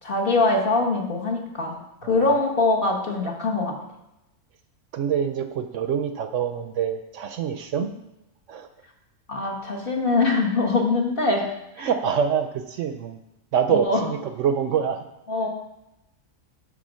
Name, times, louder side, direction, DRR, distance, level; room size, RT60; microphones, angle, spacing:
voice 1, 0.0-3.8 9.3-11.5 11.8-11.9 13.7-14.0 15.3-15.5, left 3 dB, 45° left, 0 dB, 1.5 m, -23 dB
voice 2, 4.9-7.9 8.5-8.7 11.8-13.2 13.5-15.0, right 8 dB, 70° right, 8 dB, 0.9 m, -25 dB
9.9 x 3.7 x 6.2 m, 0.90 s
omnidirectional pair, 1.4 m